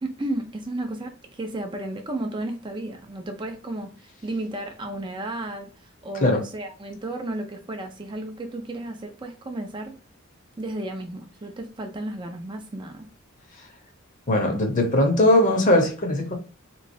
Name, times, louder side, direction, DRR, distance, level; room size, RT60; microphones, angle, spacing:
voice 1, 0.0-10.0 10.6-13.1, right 1 dB, 25° right, 0.4 m, -33 dB
voice 2, 14.3-16.3, left 1 dB, 40° left, 0.9 m, -20 dB
3.6 x 3.0 x 2.6 m
head